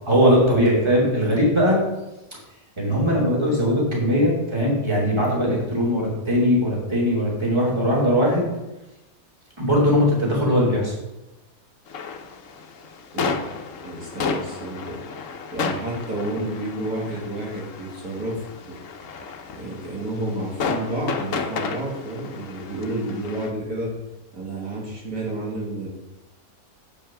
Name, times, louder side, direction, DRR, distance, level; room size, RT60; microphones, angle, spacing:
voice 1, 0.1-1.8 2.8-8.4 9.6-10.9, equal, 20° right, -5 dB, 3.0 m, -20 dB
sound 1, 11.9-23.5, left 5 dB, 60° left, 1.2 m, -32 dB
voice 2, 13.1-13.4 13.8-18.8 19.5-23.9 24.3-25.9, right 1 dB, 75° right, -4 dB, 2.7 m, -30 dB
8.7 x 5.6 x 6.0 m, 0.99 s
omnidirectional pair, 1.6 m